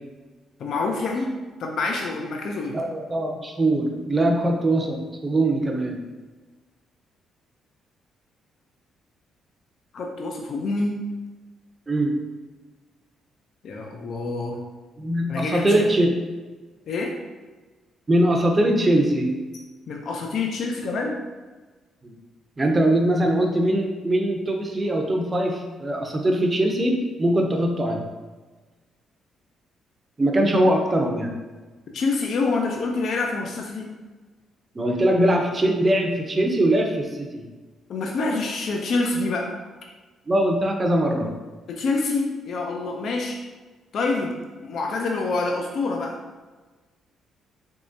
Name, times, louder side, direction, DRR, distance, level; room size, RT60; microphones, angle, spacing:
voice 1, 0.6-2.8 9.9-11.0 13.6-14.6 15.3-15.9 16.9-17.1 19.9-21.2 31.9-33.9 37.9-39.6 41.7-43.4 43.9-44.3 44.6-46.2, left 3 dB, 65° left, 1 dB, 0.4 m, -26 dB
voice 2, 2.7-6.0 11.9-12.2 15.0-16.1 18.1-19.3 22.0-22.1 22.6-28.0 30.2-31.3 34.7-37.5 40.3-41.3, right 1 dB, 25° right, 2 dB, 0.6 m, -22 dB
3.6 x 3.0 x 2.6 m, 1.3 s
cardioid pair, 90°, 0 cm